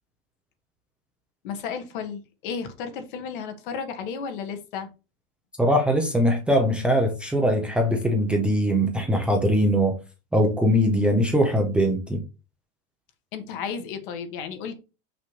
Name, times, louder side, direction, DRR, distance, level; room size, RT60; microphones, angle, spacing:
voice 1, 1.4-4.9 13.3-14.7, left 6 dB, 55° left, 1.5 m, -33 dB
voice 2, 5.6-9.9 10.3-12.2, equal, 5° right, 0.5 m, -21 dB
6.5 x 5.8 x 3.2 m
supercardioid pair, 170°, 30 cm